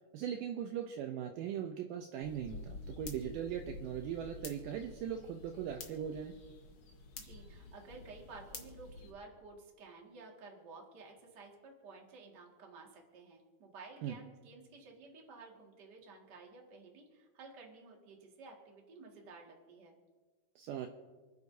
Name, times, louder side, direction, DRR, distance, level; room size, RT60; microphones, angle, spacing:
voice 1, 0.1-6.3 14.0-14.2 20.6-20.9, right 9 dB, 85° right, 5 dB, 1.9 m, -39 dB
sound 1, 2.2-9.1, left 3 dB, 55° left, 1.6 m, -50 dB
voice 2, 7.2-20.0, right 3 dB, 35° right, 0 dB, 1.7 m, -53 dB
29.0 x 9.7 x 2.7 m, 1.4 s
omnidirectional pair, 4.5 m